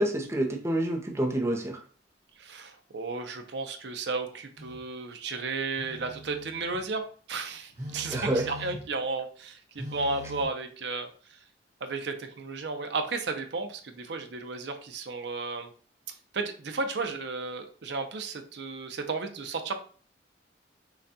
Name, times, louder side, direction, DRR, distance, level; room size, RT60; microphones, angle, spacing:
voice 1, 0.0-1.8 8.1-8.4, right 1 dB, 15° right, 1 dB, 0.6 m, -27 dB
voice 2, 2.4-7.0 7.3-9.6 9.9-11.1 11.8-15.7 16.3-19.7, right 3 dB, 70° right, 6 dB, 0.6 m, -33 dB
Telephone, 4.6-4.8 5.8-6.8 7.8-9.0 9.8-10.4, equal, 45° right, 1.2 m, -42 dB
6.2 x 2.3 x 2.7 m, 0.42 s
head